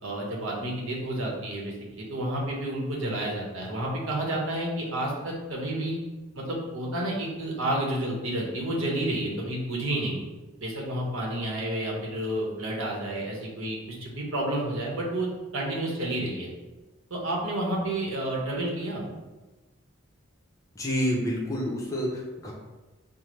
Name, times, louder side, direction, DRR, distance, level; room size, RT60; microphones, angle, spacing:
voice 1, 0.0-6.0 6.3-10.2 10.6-16.5 17.1-19.0, right 1 dB, 75° right, -2 dB, 1.0 m, -30 dB
voice 2, 20.8-22.5, equal, 15° left, -2 dB, 0.6 m, -28 dB
5.6 x 2.1 x 3.2 m, 1.1 s
head